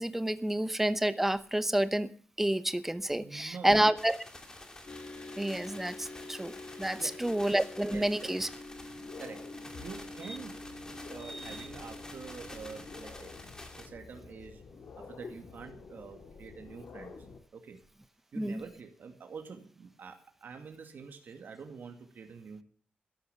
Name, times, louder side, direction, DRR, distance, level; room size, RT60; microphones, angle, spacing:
voice 1, 0.0-2.1 2.4-4.2 5.4-8.5 11.3-11.5 18.4-18.6, right 1 dB, 10° right, 13 dB, 0.8 m, -29 dB
voice 2, 3.1-3.9 7.0-7.4 7.9-8.4 9.2-9.4 9.7-13.4 13.8-14.6 14.9-17.1 17.5-17.8 18.3-22.6, right 5 dB, 65° right, 4 dB, 2.3 m, -47 dB
sound 1, 4.0-13.9, left 2 dB, 20° left, 2.5 m, -49 dB
sound 2, 4.9-13.1, left 2 dB, 40° left, 2.6 m, -47 dB
sound 3, 8.6-17.4, left 5 dB, 80° left, 2.8 m, -50 dB
13.0 x 12.0 x 6.8 m, 0.43 s
wide cardioid pair, 140°, 3 cm